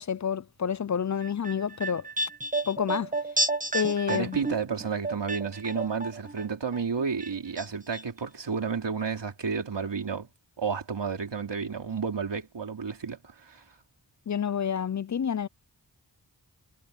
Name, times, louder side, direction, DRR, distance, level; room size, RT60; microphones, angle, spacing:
voice 1, 0.0-2.1 2.7-3.1 3.7-4.4 14.3-15.5, left 7 dB, 45° left, 0.5 m, -29 dB
sound 1, 1.2-6.4 6.7-7.7 7.9-8.0, right 2 dB, 20° right, 1.5 m, -31 dB
voice 2, 4.1-10.3 10.6-13.6, right 5 dB, 80° right, 3.6 m, -31 dB
wide cardioid pair, 70°, 42 cm